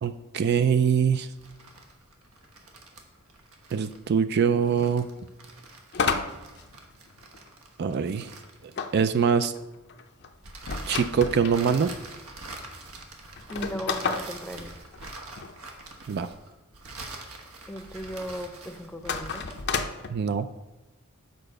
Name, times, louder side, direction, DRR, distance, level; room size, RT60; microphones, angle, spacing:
voice 1, 0.0-1.3 3.7-5.1 7.8-8.3 8.9-9.5 10.9-11.9 16.1-16.3 20.1-20.5, right 6 dB, 50° right, 11 dB, 0.3 m, -23 dB
sound 1, 1.3-9.1 10.4-19.7, right 2 dB, 90° right, 1.2 m, -44 dB
sound 2, 5.9-7.5 8.8-11.6 12.3-12.4 12.6-12.7 13.4-15.5 19.0-20.1, left 5 dB, 50° left, 0.6 m, -31 dB
voice 2, 13.5-14.7 17.7-19.5, equal, 5° left, 5 dB, 0.6 m, -37 dB
6.8 x 4.9 x 6.4 m, 1.0 s
head